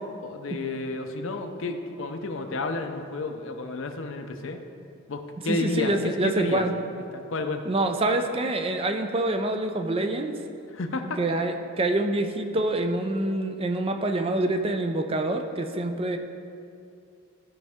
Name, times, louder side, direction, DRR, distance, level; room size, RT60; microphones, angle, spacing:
voice 1, 0.2-4.6 5.1-6.7 7.1-7.6 10.7-11.2, left 2 dB, 65° left, 6 dB, 0.6 m, -31 dB
voice 2, 5.5-6.7 7.7-10.3 11.2-16.2, right 2 dB, 25° right, 6 dB, 0.4 m, -26 dB
14.0 x 5.4 x 3.5 m, 2.5 s
head